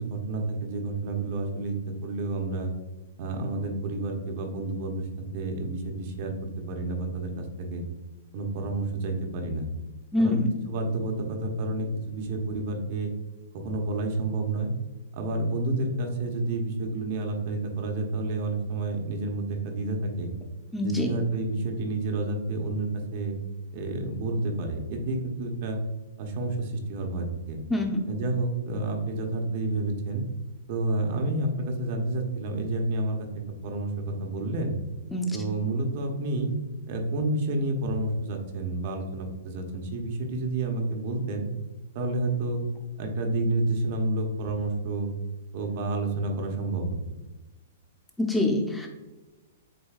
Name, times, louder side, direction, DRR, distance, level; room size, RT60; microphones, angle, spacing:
voice 1, 0.1-1.7 2.0-2.7 3.2-5.1 5.3-7.8 8.3-9.7 10.2-10.4 10.7-13.1 13.5-14.7 15.1-20.3 20.8-23.4 23.7-25.8 26.2-27.6 28.1-30.2 30.7-33.2 33.6-34.7 35.3-36.5 36.9-41.4 41.9-42.6 43.0-45.1 45.5-46.9, right 2 dB, 50° right, 3 dB, 0.9 m, -29 dB
voice 2, 10.1-10.5 20.7-21.1 27.7-28.1 35.1-35.4 48.2-48.9, left 2 dB, 5° left, 1 dB, 0.8 m, -25 dB
7.6 x 2.7 x 2.4 m, 1.1 s
hypercardioid pair, 130°, 0 cm